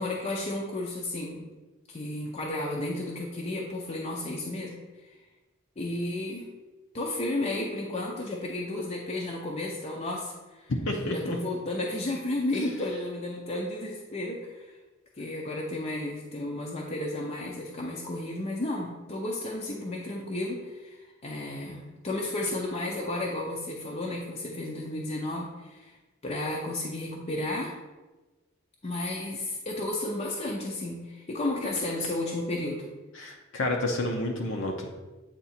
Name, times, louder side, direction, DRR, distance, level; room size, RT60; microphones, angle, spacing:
voice 1, 0.0-1.4 1.9-4.7 5.0-5.2 5.8-6.5 6.9-10.7 11.0-14.8 15.2-25.9 26.2-27.7 28.8-32.9, left 2 dB, 30° left, -2 dB, 0.6 m, -33 dB
voice 2, 10.7-11.4 33.1-34.9, left 1 dB, 65° left, 1 dB, 0.7 m, -30 dB
8.1 x 3.0 x 4.3 m, 1.2 s
head